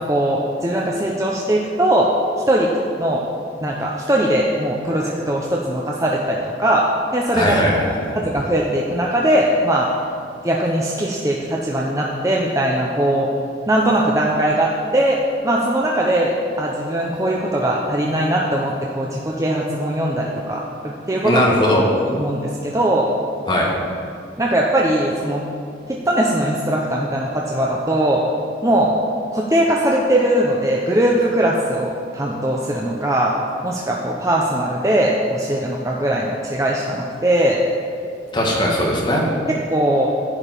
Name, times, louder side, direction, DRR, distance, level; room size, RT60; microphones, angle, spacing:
voice 1, 0.0-2.1 2.5-2.7 3.0-3.2 3.6-6.9 7.1-7.6 7.9-9.9 10.4-13.3 13.7-15.2 15.4-16.3 16.6-21.4 22.1-23.1 24.4-25.4 25.9-28.2 28.6-28.9 29.3-33.3 33.6-37.6 39.5-40.1, right 1 dB, 15° right, -2 dB, 0.7 m, -20 dB
voice 2, 7.3-7.8 21.2-21.8 23.5-23.7 38.3-39.2, left 1 dB, 25° left, -3 dB, 1.7 m, -18 dB
11.0 x 5.1 x 7.5 m, 2.4 s
head